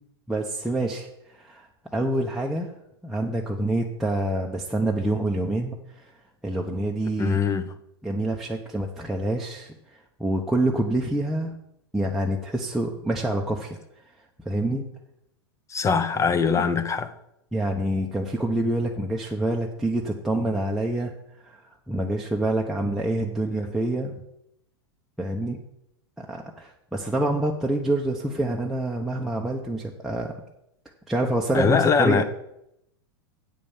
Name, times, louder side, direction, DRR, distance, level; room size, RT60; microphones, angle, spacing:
voice 1, 0.3-1.7 1.9-2.7 3.0-6.1 6.4-7.4 8.0-9.7 10.2-11.5 11.9-13.8 14.4-14.9 17.5-21.1 21.4-21.6 21.9-24.1 25.2-25.6 26.2-30.4 31.1-32.2, right 1 dB, ahead, 0.9 m, -26 dB
voice 2, 7.2-7.7 15.7-17.1 31.5-32.2, left 6 dB, 20° left, 0.8 m, -22 dB
8.5 x 5.1 x 7.3 m
hypercardioid pair, 105°, 14 cm